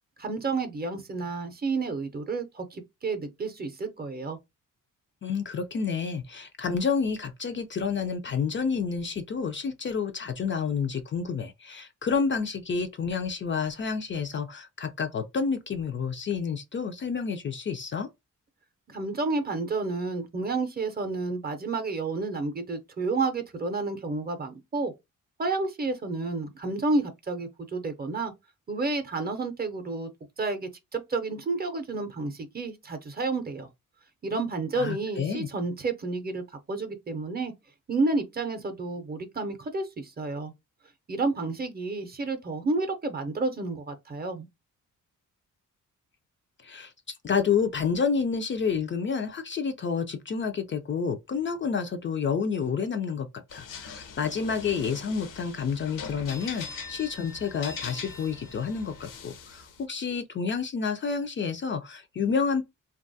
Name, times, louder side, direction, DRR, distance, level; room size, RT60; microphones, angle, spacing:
voice 1, 0.2-4.4 18.9-24.9 25.4-28.3 28.7-30.1 30.4-33.7 34.2-37.5 37.9-40.5 41.1-44.5, right 3 dB, 30° right, 0.6 m, -30 dB
voice 2, 5.2-18.1 34.8-35.5 46.6-46.9 47.2-62.6, left 6 dB, 35° left, 0.4 m, -29 dB
sound 1, 53.5-59.8, left 5 dB, 75° left, 0.7 m, -41 dB
2.9 x 2.3 x 2.6 m
cardioid pair, 100°, 33 cm